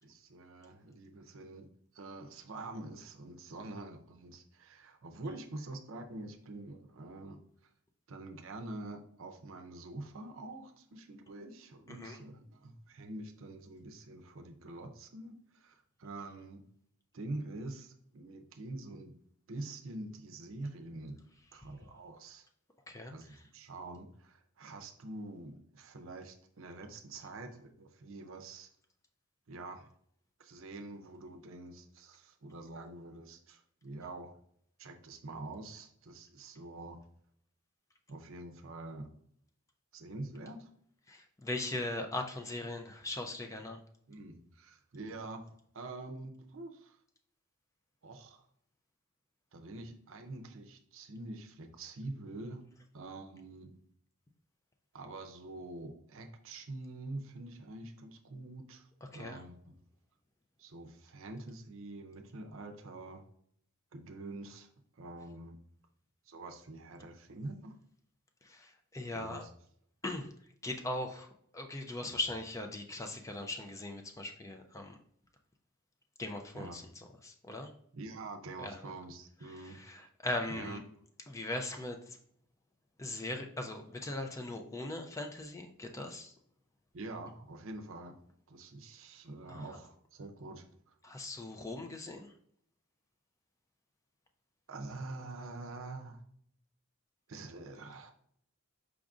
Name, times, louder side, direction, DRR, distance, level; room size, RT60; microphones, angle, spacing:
voice 1, 0.0-1.7 1.9-7.4 8.1-16.6 17.1-19.1 19.5-21.2 21.5-22.5 23.1-28.7 29.5-29.9 30.4-34.3 34.8-37.0 38.1-39.1 39.9-40.7 44.1-47.0 48.0-48.4 49.5-52.7 52.9-53.8 54.9-59.8 60.6-63.3 63.9-64.7 64.9-65.6 66.3-67.8 69.1-69.5 72.0-72.2 76.5-76.8 77.9-80.1 80.5-80.8 86.9-88.1 88.5-90.9 94.7-96.2 97.3-98.1, right 2 dB, 60° right, 5 dB, 0.6 m, -46 dB
voice 2, 41.1-43.8 59.1-59.4 68.4-69.5 70.0-70.3 70.6-71.3 71.5-75.0 76.2-77.7 78.6-78.9 79.5-80.8 81.3-82.2 83.0-86.3 89.5-89.6 91.0-92.3, left 2 dB, 15° left, 4 dB, 0.3 m, -39 dB
4.9 x 2.5 x 3.5 m, 0.66 s
head